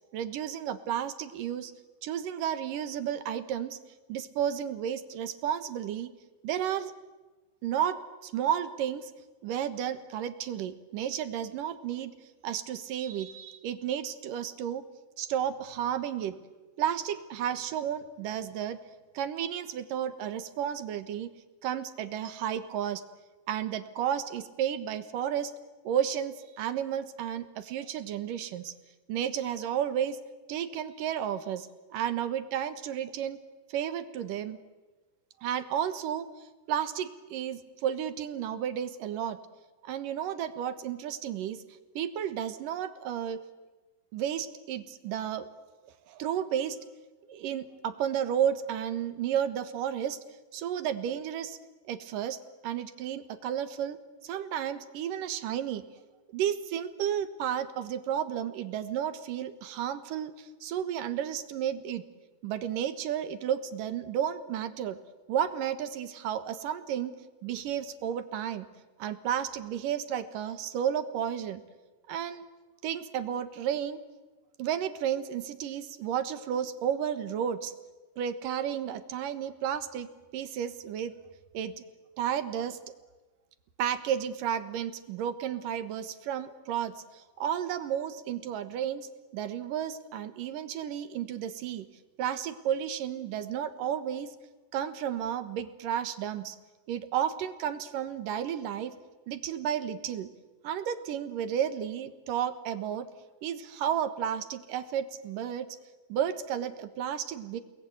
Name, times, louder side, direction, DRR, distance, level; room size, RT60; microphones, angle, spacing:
voice 1, 0.1-1.7 2.0-3.8 4.1-6.1 6.4-6.9 7.6-9.1 9.4-12.1 12.4-14.8 15.2-16.4 16.8-18.8 19.1-21.3 21.6-23.0 23.5-25.5 25.8-28.7 29.1-30.2 30.5-33.4 33.7-34.6 35.4-39.4 39.8-41.6 41.9-43.4 44.1-45.5 46.1-46.8 47.3-50.2 50.5-51.6 51.8-52.4 52.6-55.8 56.3-62.0 62.4-65.0 65.3-68.7 69.0-71.6 72.1-72.4 72.8-74.0 74.6-77.7 78.2-81.1 81.5-81.7 82.2-82.9 83.8-91.9 92.2-94.3 94.7-96.6 96.9-99.0 99.3-100.3 100.6-103.1 103.4-105.8 106.1-107.6, right 9 dB, 80° right, 11 dB, 3.0 m, -32 dB
29.5 x 20.0 x 9.5 m, 1.2 s
omnidirectional pair, 3.9 m